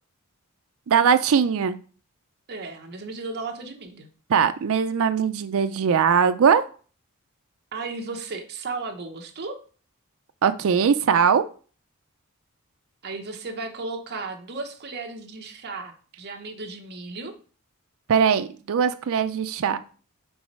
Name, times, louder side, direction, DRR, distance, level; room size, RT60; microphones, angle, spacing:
voice 1, 0.9-1.8 4.3-6.6 10.4-11.4 18.1-19.8, right 7 dB, 65° right, 9 dB, 0.4 m, -20 dB
voice 2, 2.5-4.1 7.7-9.6 13.0-17.3, right 3 dB, 50° right, 4 dB, 0.9 m, -35 dB
4.7 x 3.9 x 5.3 m, 0.40 s
head